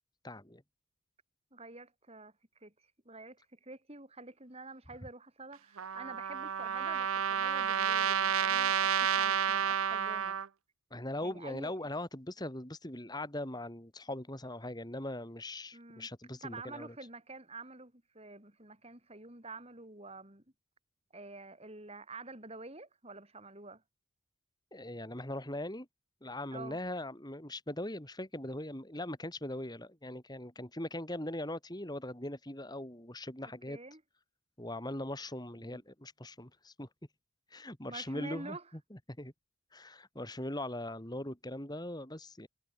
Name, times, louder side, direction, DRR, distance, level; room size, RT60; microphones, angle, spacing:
voice 1, 0.2-0.6 10.9-16.9 24.7-25.9 26.2-33.8 34.6-36.9 37.5-38.6 38.9-39.3 39.7-42.5, left 1 dB, 20° left, 3.3 m, -40 dB
voice 2, 1.5-2.3 2.6-2.7 3.1-10.4 11.2-11.8 15.7-16.1 16.4-20.4 21.1-23.8 26.5-26.8 33.4-34.0 35.6-35.8 37.9-38.6, right 3 dB, 30° right, 5.1 m, -48 dB
Trumpet, 5.8-10.5, right 8 dB, 75° right, 0.7 m, -30 dB
head